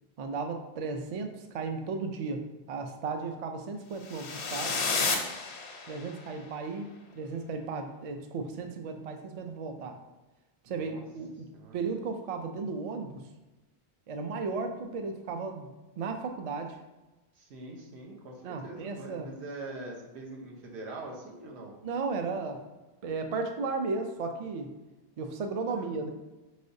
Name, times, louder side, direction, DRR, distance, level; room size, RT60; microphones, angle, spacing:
voice 1, 0.2-4.8 5.9-6.9 7.1-10.0 10.6-11.5 11.7-13.3 14.1-15.7 16.0-16.8 18.4-19.3 21.8-22.6 23.0-24.7 25.2-26.1, right 4 dB, 55° right, 5 dB, 0.4 m, -35 dB
sound 1, 4.0-6.2, left 4 dB, 90° left, 0.9 m, -31 dB
voice 2, 10.7-11.0 11.5-11.8 17.3-21.7 25.7-26.1, right 2 dB, 90° right, -1 dB, 1.1 m, -43 dB
4.5 x 3.3 x 2.6 m, 1.1 s
omnidirectional pair, 1.1 m